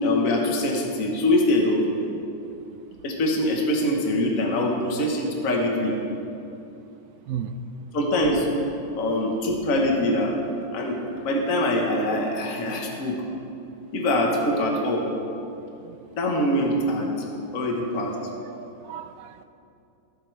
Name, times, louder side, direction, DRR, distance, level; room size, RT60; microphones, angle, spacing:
voice 1, 0.0-1.9 3.0-6.0 7.9-8.5 8.9-10.3 10.7-11.0 11.2-13.2 13.9-15.1 16.2-17.1 17.5-18.2, left 1 dB, 45° left, 0 dB, 1.6 m, -23 dB
voice 2, 18.2-19.4, right 10 dB, 75° right, 10 dB, 0.8 m, -35 dB
23.0 x 7.8 x 3.3 m, 2.7 s
omnidirectional pair, 2.1 m